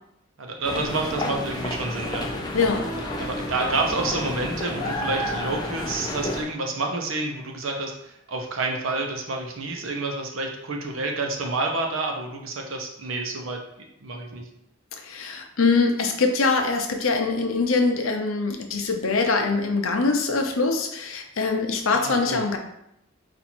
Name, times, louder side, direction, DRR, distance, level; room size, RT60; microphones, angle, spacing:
voice 1, 0.4-2.3 3.2-14.4 21.9-22.4, right 2 dB, 75° right, 2 dB, 0.8 m, -29 dB
sound 1, 0.6-6.4, left 1 dB, 20° left, 0.5 m, -30 dB
voice 2, 2.5-2.9 15.0-22.6, left 4 dB, 75° left, 4 dB, 0.6 m, -23 dB
4.2 x 2.6 x 4.3 m, 0.79 s
head